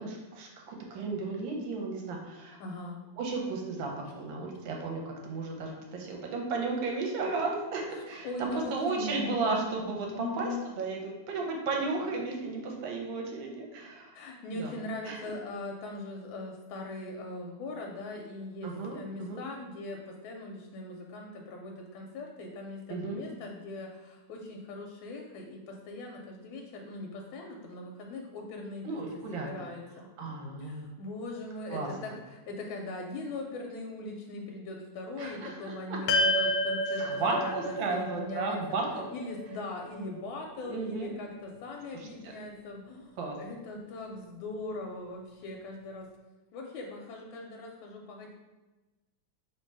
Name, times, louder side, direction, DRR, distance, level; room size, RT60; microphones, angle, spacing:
voice 1, 0.0-2.6 3.2-10.5 10.8-14.2 14.6-14.8 15.0-15.2 18.6-19.4 22.9-23.2 28.8-29.6 30.2-30.9 31.7-31.9 35.2-36.0 36.3-36.4 37.0-39.1 40.6-41.1 41.9-42.3 43.2-43.4, right 3 dB, 85° right, 0 dB, 1.5 m, -34 dB
voice 2, 2.6-3.0 7.9-9.6 10.1-10.7 14.1-28.9 29.3-38.8 39.1-43.1 43.4-46.1 46.5-48.3, left 2 dB, 90° left, 1 dB, 1.4 m, -40 dB
sound 1, 36.1-40.5, left 1 dB, 75° left, 1.1 m, -31 dB
3.2 x 2.9 x 4.6 m, 1.2 s
omnidirectional pair, 2.1 m